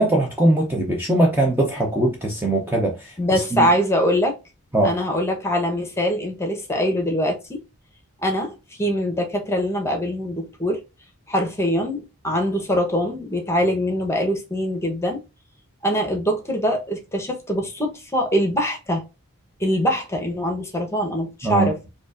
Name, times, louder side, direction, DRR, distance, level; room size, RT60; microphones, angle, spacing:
voice 1, 0.0-3.7 4.7-5.0 21.4-21.7, right 1 dB, 10° right, 0.6 m, -21 dB
voice 2, 3.2-4.4 4.8-7.6 8.2-10.8 11.3-15.2 15.8-19.0 19.6-21.8, equal, 10° left, 1.0 m, -23 dB
4.7 x 2.5 x 2.5 m
head